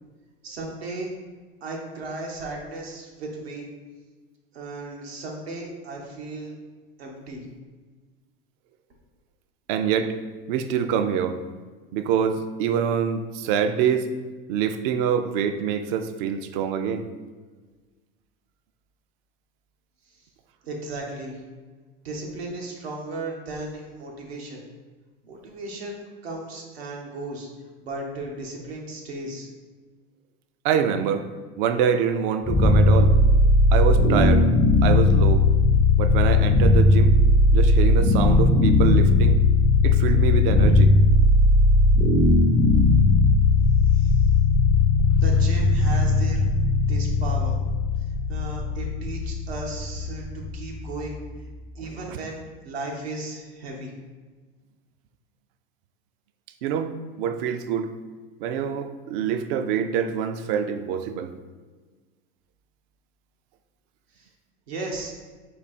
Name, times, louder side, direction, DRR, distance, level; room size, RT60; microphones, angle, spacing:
voice 1, 0.4-1.1 1.6-3.7 4.5-6.6 7.0-7.4 20.6-21.4 22.0-24.6 25.2-27.5 27.8-29.5 43.9-44.2 45.2-46.4 46.9-47.6 48.3-51.2 51.7-52.4 52.6-53.9 64.2-64.3 64.7-65.1, right 2 dB, 90° right, -1 dB, 1.0 m, -35 dB
voice 2, 9.7-10.1 10.5-11.4 11.9-14.1 14.5-17.1 30.6-31.3 31.6-33.1 33.7-34.5 34.8-35.4 36.0-37.1 37.5-39.4 39.8-40.9 51.9-52.2 56.6-56.9 57.2-57.9 58.4-61.3, right 7 dB, 60° right, 9 dB, 0.5 m, -25 dB
sound 1, 32.5-51.5, left 2 dB, 20° left, 0.4 m, -18 dB
4.3 x 2.7 x 4.1 m, 1.4 s
hypercardioid pair, 95°, 30 cm